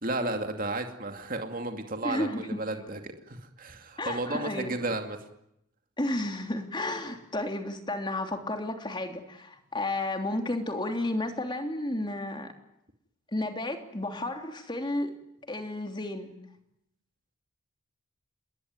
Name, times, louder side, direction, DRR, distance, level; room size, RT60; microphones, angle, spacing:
voice 1, 0.0-5.2, right 2 dB, 40° right, 5 dB, 2.5 m, -33 dB
voice 2, 2.0-2.6 4.0-4.7 6.0-12.5 13.3-15.1 15.5-16.4, left 1 dB, 20° left, 5 dB, 3.3 m, -32 dB
29.0 x 21.0 x 9.6 m, 0.80 s
head